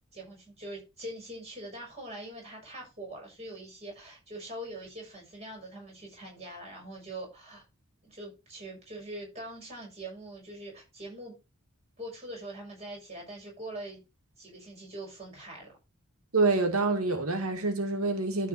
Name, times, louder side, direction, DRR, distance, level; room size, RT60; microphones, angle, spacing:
voice 1, 0.1-7.6 8.0-11.4 12.0-14.0 14.4-15.7, right 1 dB, 30° right, 6.9 m, -43 dB
voice 2, 16.3-18.5, right 3 dB, 85° right, 2.1 m, -27 dB
13.0 x 4.3 x 5.7 m
head